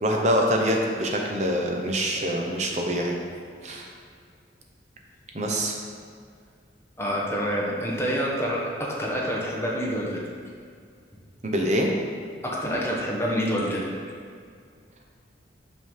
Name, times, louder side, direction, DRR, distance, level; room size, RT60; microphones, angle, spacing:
voice 1, 0.0-3.2 3.6-3.9 5.3-5.7 11.4-11.9, equal, 40° right, 1 dB, 0.8 m, -25 dB
voice 2, 7.0-10.2 12.4-13.9, equal, 15° left, -3 dB, 1.0 m, -27 dB
5.6 x 5.5 x 4.7 m, 2.2 s
head